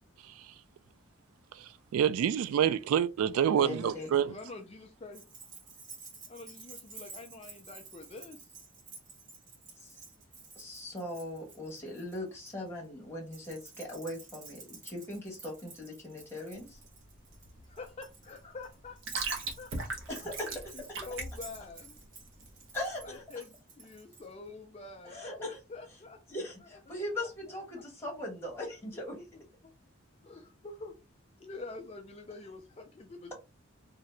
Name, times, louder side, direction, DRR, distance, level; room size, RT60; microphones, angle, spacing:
voice 1, 1.5-4.3, right 9 dB, 80° right, 0.3 m, -27 dB
voice 2, 3.6-4.1 9.8-10.0 10.6-16.8 20.1-20.3 22.7-23.2 25.0-25.6 26.3-29.2, left 1 dB, 10° left, 1.1 m, -40 dB
voice 3, 4.3-5.2 6.3-8.5 17.6-22.0 23.0-26.2 26.6-26.8 27.5-27.8 29.1-29.7 30.2-31.0 31.4-33.3, left 3 dB, 30° left, 0.3 m, -47 dB
Keys jangling, 5.1-12.5 13.3-24.3, right 4 dB, 35° right, 0.9 m, -51 dB
sound 1, 16.5-23.2, right 3 dB, 60° right, 0.8 m, -40 dB
2.8 x 2.6 x 3.2 m
head